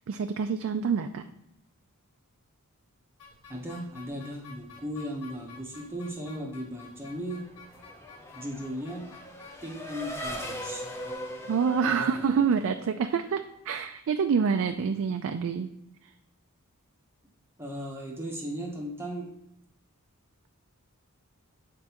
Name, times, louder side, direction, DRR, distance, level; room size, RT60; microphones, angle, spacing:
voice 1, 0.1-1.2 11.5-15.7, right 6 dB, 60° right, 7 dB, 0.3 m, -27 dB
sound 1, 3.2-11.1, left 4 dB, 80° left, 1.5 m, -52 dB
voice 2, 3.5-7.5 8.3-9.1 9.6-10.9 11.8-12.2 17.6-19.3, equal, 10° right, -2 dB, 1.0 m, -37 dB
Race car auto racing / Accelerating revving vroom, 7.2-13.3, equal, 10° left, 0.7 m, -40 dB
7.4 x 4.5 x 2.9 m, 0.84 s
head